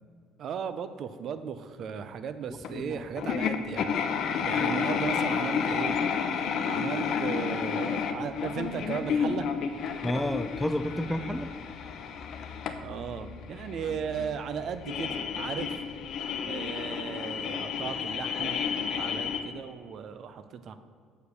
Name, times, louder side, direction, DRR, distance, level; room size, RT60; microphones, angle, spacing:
voice 1, 0.4-3.9 4.4-6.0 6.7-9.5 12.8-15.7 16.4-20.7, right 7 dB, 50° right, 11 dB, 0.5 m, -36 dB
sound 1, 2.6-2.7 3.2-19.4, left 6 dB, 55° left, 0.7 m, -31 dB
voice 2, 2.7-3.1 4.8-5.0 10.0-11.5, equal, 5° left, 10 dB, 0.3 m, -31 dB
6.6 x 4.8 x 6.6 m, 2.1 s
cardioid pair, 120°, 0 cm